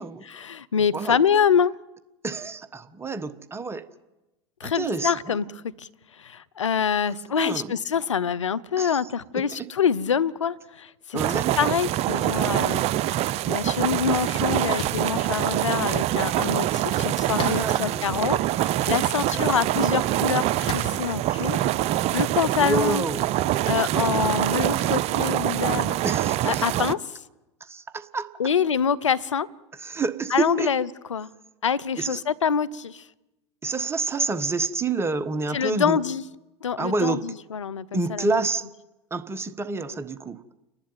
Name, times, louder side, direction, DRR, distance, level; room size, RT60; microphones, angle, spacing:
voice 1, 0.2-1.7 4.6-5.5 5.8-12.8 13.5-23.0 23.7-26.0 26.4-27.2 28.4-29.5 30.3-31.3 31.6-33.1 35.5-36.2 36.6-38.4, left 7 dB, 90° left, 15 dB, 0.8 m, -26 dB
voice 2, 2.2-3.8 4.6-5.1 7.4-7.7 8.8-9.0 9.6-9.7 11.1-11.6 16.9-18.2 19.3-19.8 22.5-23.2 26.0-26.6 27.7-28.3 29.8-30.7 32.0-32.2 33.6-36.0 36.8-37.2 37.9-38.6 39.1-40.4, right 3 dB, 15° right, 11 dB, 1.4 m, -28 dB
sound 1, 11.2-26.9, right 14 dB, 45° right, 0.7 m, -25 dB
sound 2, 14.7-15.1 17.3-17.9 18.6-18.7 20.6-21.0, left 3 dB, 40° left, 4.4 m, -33 dB
29.0 x 11.5 x 9.2 m, 1.0 s
hypercardioid pair, 90°, 15 cm